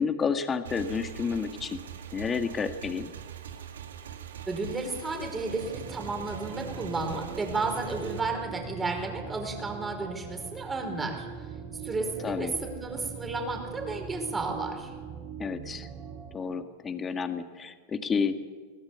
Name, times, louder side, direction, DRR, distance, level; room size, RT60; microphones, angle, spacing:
voice 1, 0.0-1.8 2.1-3.1 12.2-12.5 15.4-15.9 16.3-18.4, left 5 dB, 25° left, 8 dB, 1.9 m, -30 dB
Motorcycle / Engine, 0.6-8.2, right 9 dB, 75° right, 2.4 m, -43 dB
voice 2, 4.5-11.3 11.7-14.9, right 3 dB, 15° right, 4 dB, 5.1 m, -33 dB
sound 1, 4.9-16.3, right 6 dB, 35° right, 3.1 m, -41 dB
22.0 x 18.5 x 8.3 m, 1.5 s
hypercardioid pair, 95°, 0 cm